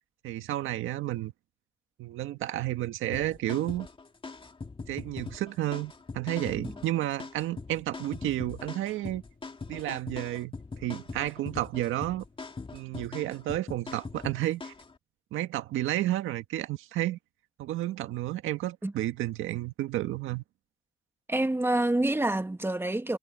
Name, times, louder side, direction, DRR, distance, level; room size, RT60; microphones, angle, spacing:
voice 1, 0.2-1.3 2.0-3.9 4.9-9.2 9.7-12.2 12.7-14.7 15.3-17.2 17.6-20.4, right 14 dB, 90° right, 1.7 m, -31 dB
sound 1, 3.1-14.9, left 4 dB, 25° left, 2.5 m, -41 dB
voice 2, 21.3-23.2, right 1 dB, 10° right, 1.9 m, -27 dB
cardioid pair, 90°, 20 cm